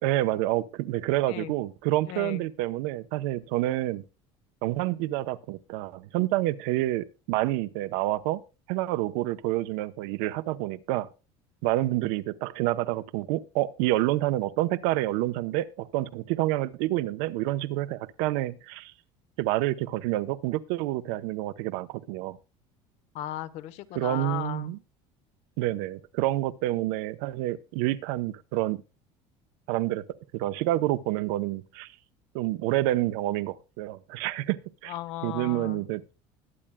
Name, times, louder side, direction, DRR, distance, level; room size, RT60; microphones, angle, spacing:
voice 1, 0.0-4.0 4.6-8.4 8.7-11.1 11.6-18.9 19.4-22.4 23.9-24.8 25.6-28.8 29.7-30.0 30.3-31.9 32.3-34.9 35.2-36.1, right 16 dB, 80° right, 0.8 m, -28 dB
voice 2, 2.0-2.5 23.1-24.8 34.9-35.8, left 13 dB, 65° left, 1.0 m, -36 dB
21.0 x 8.8 x 2.3 m
cardioid pair, 155°, 13 cm